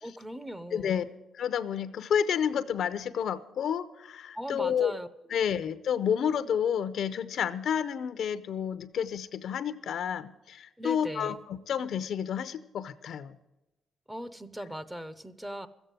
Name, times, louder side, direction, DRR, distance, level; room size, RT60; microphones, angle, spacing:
voice 1, 0.0-1.1 4.3-5.1 5.5-5.6 10.8-11.4 14.1-15.7, equal, 10° right, 15 dB, 0.8 m, -39 dB
voice 2, 0.7-1.0 1.4-4.9 5.3-13.4, left 8 dB, 65° left, 13 dB, 0.7 m, -30 dB
14.0 x 8.2 x 9.0 m, 0.98 s
cardioid pair, 90°, 0 cm